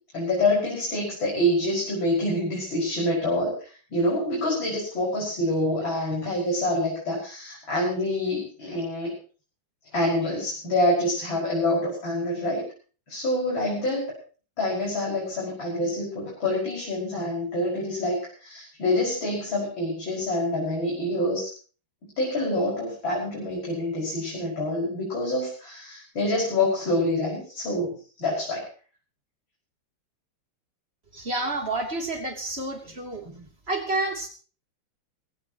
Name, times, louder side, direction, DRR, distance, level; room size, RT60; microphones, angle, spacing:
voice 1, 0.1-9.1 9.9-12.6 13.1-14.0 14.6-21.5 22.2-27.9 28.2-28.7 33.3-33.4, left 1 dB, 60° left, -5 dB, 6.6 m, -26 dB
voice 2, 31.1-33.2 33.7-34.3, right 2 dB, 25° right, 2 dB, 3.3 m, -29 dB
20.0 x 17.5 x 3.0 m, 0.39 s
omnidirectional pair, 2.4 m